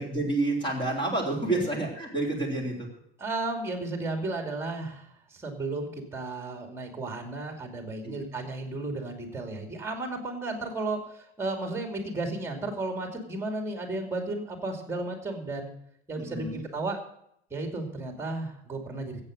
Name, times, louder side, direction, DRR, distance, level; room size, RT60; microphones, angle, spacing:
voice 1, 0.0-2.9 8.0-8.2 16.2-16.6, right 2 dB, 15° left, 1 dB, 3.7 m, -29 dB
voice 2, 3.2-15.7 16.1-17.0 17.5-19.2, right 2 dB, 10° right, 4 dB, 2.5 m, -34 dB
14.0 x 8.6 x 6.5 m, 0.72 s
cardioid pair, 160°, 30 cm